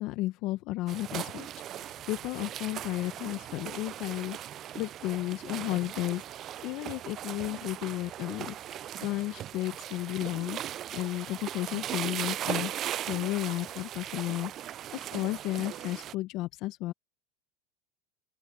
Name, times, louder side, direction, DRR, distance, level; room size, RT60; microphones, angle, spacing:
voice 1, 0.0-4.4 4.7-6.2 6.6-12.7 13.1-16.9, left 18 dB, 60° left, 0.9 m, -33 dB
sound 1, 0.9-16.1, right 11 dB, 45° right, 0.4 m, -38 dB
open air
hypercardioid pair, 100°, 0 cm